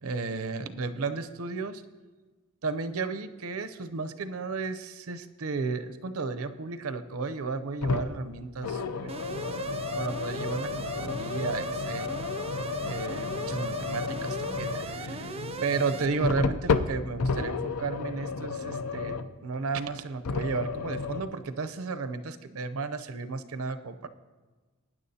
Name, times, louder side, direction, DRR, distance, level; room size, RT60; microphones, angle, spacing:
voice 1, 0.0-1.8 2.6-12.1 12.8-15.3 15.6-24.1, right 4 dB, 75° right, 10 dB, 0.7 m, -33 dB
sound 1, 7.8-8.2 8.6-19.4 20.2-21.2, left 4 dB, 85° left, 0.5 m, -32 dB
Alarm, 9.1-16.1, right 4 dB, 25° right, 0.5 m, -38 dB
19.0 x 9.8 x 2.8 m, 1.3 s
head